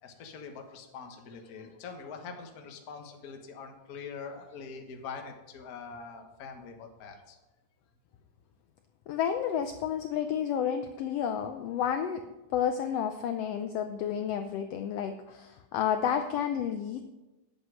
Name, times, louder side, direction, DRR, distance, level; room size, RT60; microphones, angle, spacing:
voice 1, 0.0-7.4, left 5 dB, 50° left, 4 dB, 1.0 m, -44 dB
voice 2, 9.1-12.2 12.5-17.1, left 8 dB, 75° left, 8 dB, 1.5 m, -31 dB
9.8 x 7.9 x 6.3 m, 1.1 s
omnidirectional pair, 3.4 m